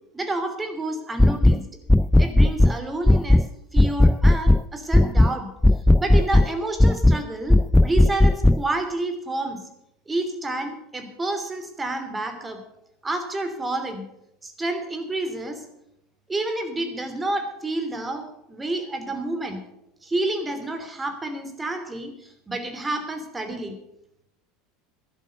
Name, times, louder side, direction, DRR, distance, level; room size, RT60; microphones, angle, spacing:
voice 1, 0.1-1.7 2.2-3.4 3.7-5.5 6.0-9.6 10.1-12.6 13.0-14.0 14.4-15.6 16.3-19.6 20.0-23.7, right 2 dB, 15° right, 7 dB, 2.9 m, -29 dB
sound 1, 1.2-1.6 1.9-2.8 3.1-3.5 3.8-4.6 4.9-5.3 5.6-6.5 6.8-7.2 7.5-8.6, left 1 dB, 5° left, 0.4 m, -15 dB
12.0 x 11.0 x 6.8 m, 0.83 s
hypercardioid pair, 80°, 0 cm